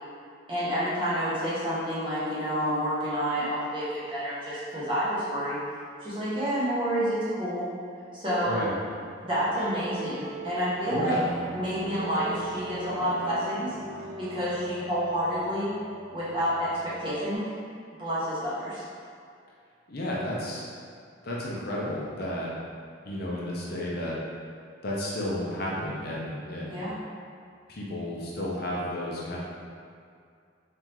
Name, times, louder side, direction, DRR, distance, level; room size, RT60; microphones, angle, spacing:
voice 1, 0.5-5.6 6.0-7.7 8.1-8.6 9.2-11.2 11.5-13.8 14.2-15.7 16.1-17.5 18.0-18.8 26.7-26.9, equal, 25° right, -11 dB, 1.2 m, -29 dB
sound 1, 8.9-17.4, right 3 dB, 40° right, 0.3 m, -39 dB
voice 2, 10.9-11.2 19.9-20.7 21.2-22.5 23.0-24.2 24.8-26.8 27.7-29.4, left 1 dB, 50° left, -5 dB, 0.6 m, -32 dB
3.7 x 3.3 x 3.0 m, 2.3 s
head